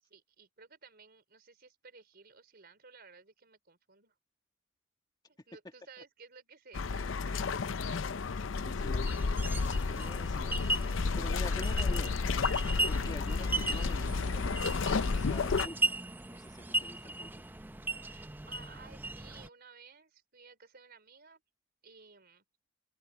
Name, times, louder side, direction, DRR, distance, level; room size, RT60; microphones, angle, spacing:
voice 1, 0.0-4.2 5.3-8.2 11.4-11.8 12.8-13.0 18.0-21.4 21.8-22.4, right 5 dB, 55° right, 4.3 m, -56 dB
sound 1, 6.7-15.7, left 4 dB, 75° left, 0.6 m, -31 dB
voice 2, 8.6-12.5 12.8-15.9 16.3-17.3, left 1 dB, 20° left, 1.5 m, -48 dB
sound 2, 9.1-19.5, right 2 dB, 10° right, 0.5 m, -37 dB
sound 3, 14.0-17.9, right 4 dB, 25° right, 3.5 m, -55 dB
head